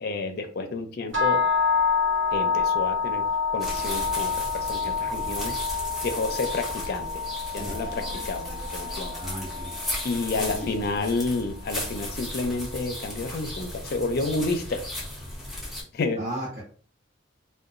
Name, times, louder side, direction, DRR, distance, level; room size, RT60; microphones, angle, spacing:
voice 1, 0.0-1.4 2.3-3.2 3.5-5.5 6.0-7.1 7.5-9.1 10.0-14.8 15.9-16.2, left 3 dB, 55° left, 6 dB, 0.4 m, -30 dB
sound 1, 1.1-11.2, left 5 dB, 70° right, 0.9 m, -28 dB
sound 2, 3.6-15.8, left 1 dB, ahead, 0.8 m, -36 dB
voice 2, 9.2-9.8 10.3-11.0 16.2-16.6, equal, 40° right, -10 dB, 1.3 m, -36 dB
2.9 x 2.2 x 2.5 m, 0.44 s
head